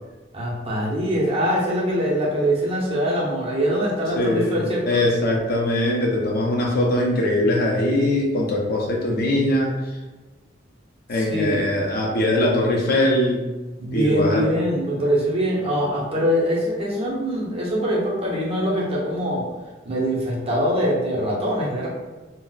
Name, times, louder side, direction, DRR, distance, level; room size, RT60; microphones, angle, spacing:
voice 1, 0.3-5.1 11.1-11.7 13.8-19.5 19.8-21.9, equal, 30° right, -4 dB, 0.7 m, -23 dB
voice 2, 4.2-4.6 4.9-9.7 11.1-13.4 13.9-14.4, left 1 dB, 55° left, -1 dB, 0.5 m, -21 dB
2.3 x 2.1 x 3.9 m, 1.2 s
head